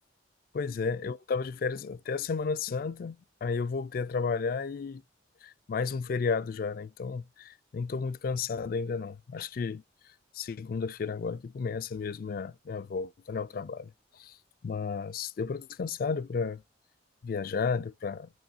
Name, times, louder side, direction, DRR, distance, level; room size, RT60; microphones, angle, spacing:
voice 1, 0.5-5.0 5.4-9.8 10.3-13.9 14.2-14.3 14.6-16.6 17.2-18.3, left 5 dB, 50° left, 0.3 m, -33 dB
9.2 x 6.1 x 2.7 m
head